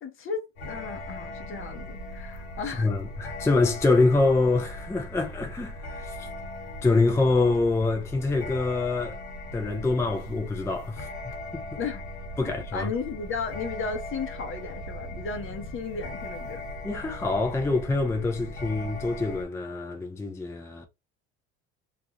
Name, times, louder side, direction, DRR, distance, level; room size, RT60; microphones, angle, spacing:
voice 1, 0.0-2.9 11.8-12.0 12.4-16.6, left 5 dB, 40° left, 0.8 m, -35 dB
sound 1, 0.6-19.5, left 1 dB, 85° left, 0.7 m, -39 dB
voice 2, 2.8-6.3 6.8-9.2 9.5-11.1 11.5-11.8 12.4-12.9 16.8-20.8, left 3 dB, 10° left, 0.5 m, -25 dB
2.4 x 2.3 x 2.9 m
hypercardioid pair, 75°, 31 cm